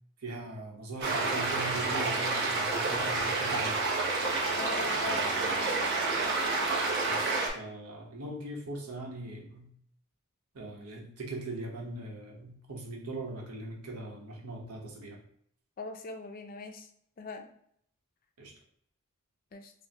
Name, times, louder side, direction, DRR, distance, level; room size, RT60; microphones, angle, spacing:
voice 1, 0.2-3.8 5.0-5.5 7.1-9.7 10.5-15.2 18.4-18.5, right 2 dB, 85° right, 0 dB, 1.0 m, -41 dB
sound 1, 1.0-7.5, right 3 dB, 50° right, 0.9 m, -29 dB
voice 2, 4.5-5.9 15.8-16.9 17.2-17.5 19.5-19.7, left 3 dB, 40° left, 5 dB, 0.4 m, -41 dB
5.4 x 2.2 x 2.8 m, 0.66 s
head